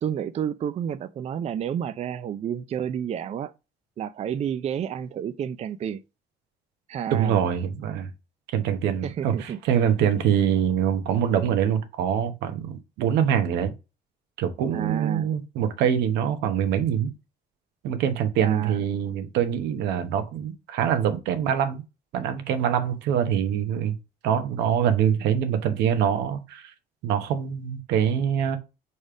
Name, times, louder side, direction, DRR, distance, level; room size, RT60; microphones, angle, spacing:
voice 1, 0.0-3.5 4.0-6.0 6.9-7.4 9.0-9.6 14.7-15.3 18.4-18.8, right 9 dB, 40° right, 0.4 m, -30 dB
voice 2, 7.1-8.1 8.5-13.7 14.4-17.1 17.8-21.8 22.1-24.0 24.2-26.7 27.0-28.6, right 9 dB, 90° right, 1.1 m, -24 dB
5.1 x 4.2 x 4.8 m
cardioid pair, 110°, 17 cm